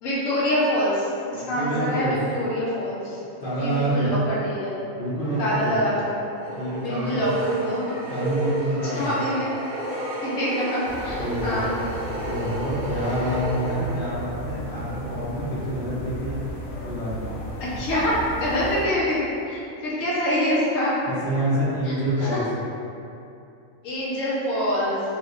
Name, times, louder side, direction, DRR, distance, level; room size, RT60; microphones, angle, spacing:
voice 1, 0.0-3.2 3.6-4.8 5.4-6.2 6.8-7.8 8.8-9.5 10.2-12.1 17.6-21.0 21.8-22.4 23.8-25.0, equal, 75° left, -7 dB, 1.2 m, -25 dB
voice 2, 1.3-2.1 3.4-4.1 4.9-5.8 6.6-7.2 8.1-9.2 11.2-11.6 12.2-16.4 16.8-17.4 21.0-22.6, right 1 dB, 50° left, -9 dB, 0.7 m, -27 dB
sound 1, 5.2-14.3, right 2 dB, 55° right, 0.9 m, -31 dB
sound 2, 10.9-18.9, equal, 90° left, 1.0 m, -35 dB
3.0 x 2.9 x 2.5 m, 2.7 s
omnidirectional pair, 1.4 m